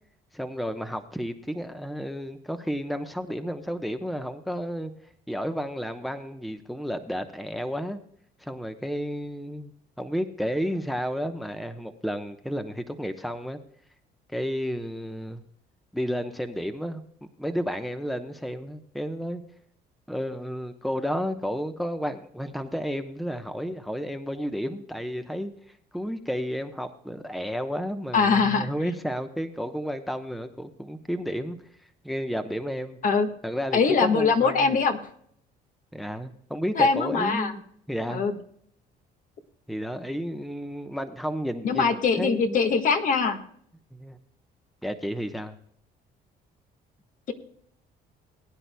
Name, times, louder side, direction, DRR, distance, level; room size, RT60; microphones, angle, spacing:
voice 1, 0.3-4.9 5.3-8.0 8.4-9.7 10.0-13.6 14.3-15.4 15.9-17.0 17.4-19.4 20.1-25.5 25.9-31.6 32.0-33.0 33.4-34.7 35.9-37.6 37.9-38.2 39.7-42.6 43.9-44.2 44.8-45.6, equal, ahead, 8 dB, 0.9 m, -32 dB
voice 2, 28.1-28.7 33.0-33.3 33.7-35.0 36.8-37.5 38.1-38.3 41.6-43.4, left 5 dB, 50° left, 6 dB, 1.6 m, -22 dB
21.0 x 10.0 x 2.2 m, 0.66 s
cardioid pair, 110°, 17 cm